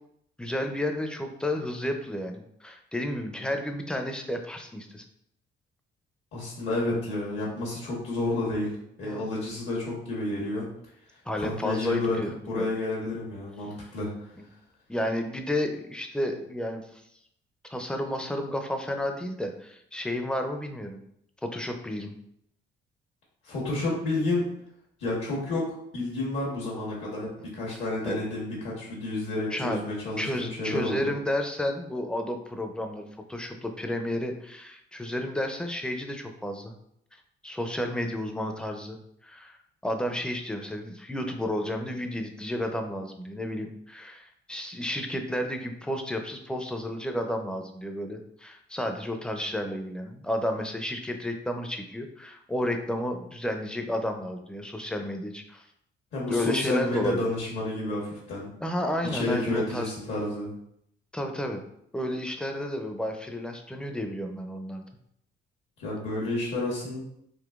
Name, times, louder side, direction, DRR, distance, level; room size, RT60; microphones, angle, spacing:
voice 1, 0.4-5.0 9.0-9.3 11.3-12.7 14.9-17.0 17.7-21.0 21.4-22.1 27.7-27.8 28.1-28.2 29.5-29.8 30.2-36.7 37.4-39.0 39.2-39.6 39.8-55.7 56.3-57.2 58.6-59.9 61.1-61.6 61.9-64.8, left 1 dB, 5° left, 5 dB, 0.4 m, -32 dB
voice 2, 6.3-10.7 11.4-12.2 12.5-14.1 23.4-24.5 25.0-31.2 56.1-58.5 59.0-60.5 65.8-67.0, left 2 dB, 75° left, -4 dB, 1.2 m, -30 dB
3.8 x 2.6 x 2.4 m, 0.72 s
cardioid pair, 90°, 20 cm